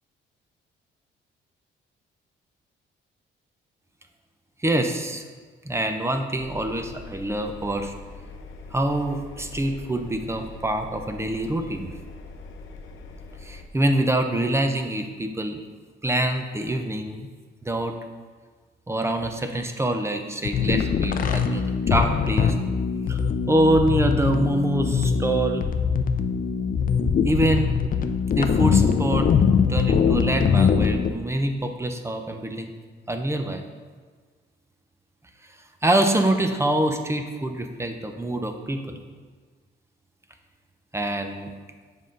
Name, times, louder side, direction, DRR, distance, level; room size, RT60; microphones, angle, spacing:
voice 1, 4.6-5.3 5.6-7.9 8.7-11.9 13.4-15.6 16.0-17.3 17.6-18.0 18.9-22.5 23.1-23.2 23.5-25.7 27.2-27.7 28.3-29.3 29.6-32.7 33.1-33.6 35.8-39.0 40.9-41.5, right 1 dB, 15° right, 6 dB, 0.7 m, -25 dB
Engine, 6.4-13.7, left 3 dB, 80° left, 0.7 m, -42 dB
sound 1, 20.4-31.1, left 6 dB, 45° left, 0.5 m, -22 dB
7.3 x 5.5 x 3.8 m, 1.5 s
cardioid pair, 90°, 20 cm